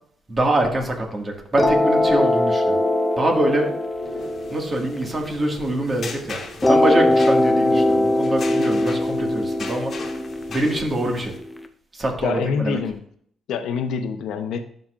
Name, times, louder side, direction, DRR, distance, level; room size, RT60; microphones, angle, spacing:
voice 1, 0.3-2.8 3.2-3.7 4.5-9.9 10.5-11.3 11.9-12.8, right 1 dB, 35° right, 1 dB, 2.0 m, -24 dB
sound 1, 1.6-6.0 6.6-11.6, left 1 dB, 10° left, 0.7 m, -21 dB
sound 2, 3.9-11.4, left 4 dB, 50° left, 1.4 m, -39 dB
voice 2, 12.2-13.0 13.5-14.6, left 6 dB, 80° left, 8 dB, 0.8 m, -25 dB
12.0 x 5.1 x 2.5 m, 0.62 s
cardioid pair, 90°, 0 cm